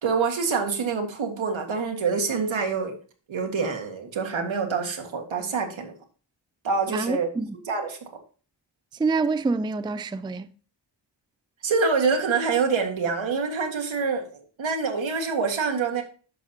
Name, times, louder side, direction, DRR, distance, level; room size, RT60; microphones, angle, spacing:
voice 1, 0.0-3.0 3.3-5.9 6.6-7.3 7.7-8.0 11.6-16.0, right 5 dB, 85° right, 1.9 m, -26 dB
voice 2, 6.9-7.5 9.0-10.5, right 4 dB, 10° right, 0.3 m, -26 dB
10.5 x 6.6 x 2.8 m
wide cardioid pair, 130°, 45 cm